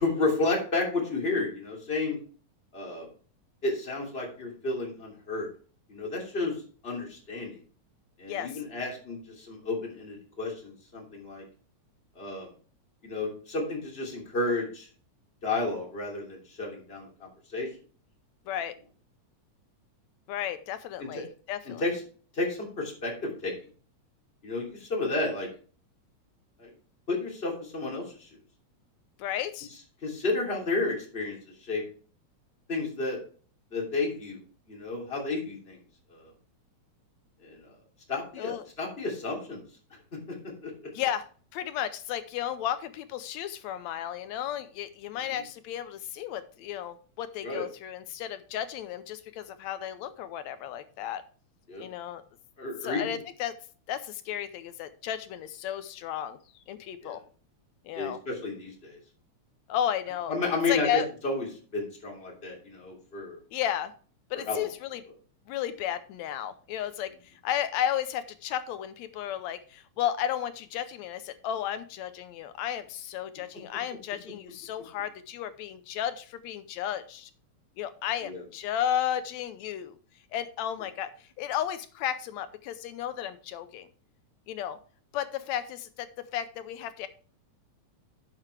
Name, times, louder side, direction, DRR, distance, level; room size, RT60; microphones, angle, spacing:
voice 1, 0.0-2.2 2.7-3.1 3.6-5.5 5.9-6.6 6.8-7.6 8.2-11.4 12.1-12.5 13.0-14.9 15.4-17.7 21.0-21.2 21.8-22.0 22.3-23.5 24.4-25.5 26.6-26.7 27.1-28.3 30.0-31.8 32.7-33.2 33.7-34.4 34.7-35.8 36.1-36.3 37.4-37.7 38.1-39.6 40.6-40.7 45.1-45.4 47.4-47.6 51.7-51.9 52.6-53.1 57.0-57.2 57.9-59.0 60.3-61.5 61.7-63.4 64.5-64.7 78.2-78.4, left 3 dB, 20° left, -2 dB, 2.9 m, -32 dB
voice 2, 20.3-21.8 29.2-29.7 38.4-38.6 41.0-41.3 41.5-51.2 51.8-52.2 52.8-53.5 53.9-56.4 56.7-57.2 57.9-58.2 59.7-60.3 60.7-61.1 63.5-63.9 64.3-65.0 65.5-67.1 67.4-77.3 77.8-80.0 80.3-81.1 81.4-83.9 84.5-84.8 85.1-87.1, left 10 dB, 75° left, 12 dB, 1.8 m, -33 dB
10.5 x 7.6 x 3.3 m, 0.40 s
omnidirectional pair, 3.4 m